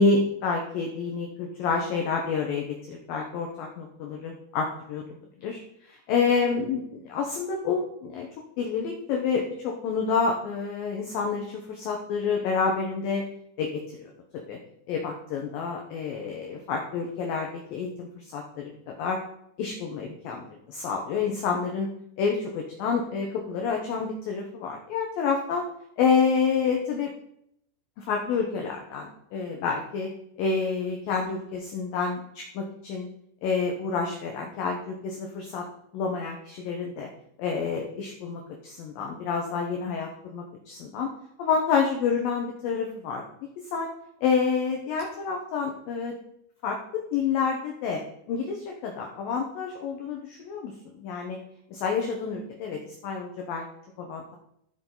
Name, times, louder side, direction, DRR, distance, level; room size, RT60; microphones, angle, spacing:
voice 1, 0.0-5.0 5.4-5.6 5.9-8.3 8.6-13.2 13.6-14.6 14.9-19.2 19.6-21.9 22.2-25.6 26.0-27.1 28.0-30.1 30.4-33.1 33.4-35.6 35.9-37.1 37.4-41.1 41.4-43.2 43.7-43.9 44.2-46.2 46.6-48.0 48.3-51.4 51.7-53.7 54.0-54.4, left 5 dB, 75° left, 1 dB, 2.1 m, -28 dB
14.5 x 5.6 x 3.9 m, 0.74 s
omnidirectional pair, 5.2 m